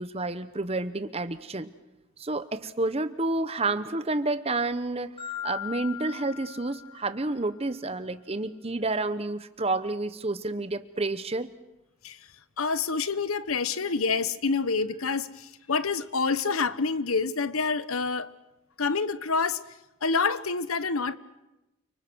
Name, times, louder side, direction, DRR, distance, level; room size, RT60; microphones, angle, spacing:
voice 1, 0.0-1.7 2.2-5.2 5.4-11.5, right 2 dB, 30° right, 12 dB, 1.0 m, -30 dB
Marimba xylophone, 5.2-7.4, left 11 dB, 25° left, 6.8 m, -39 dB
voice 2, 12.6-18.3 18.8-19.6 20.0-21.2, left 4 dB, 80° left, 15 dB, 1.1 m, -27 dB
29.5 x 25.0 x 6.3 m, 0.97 s
head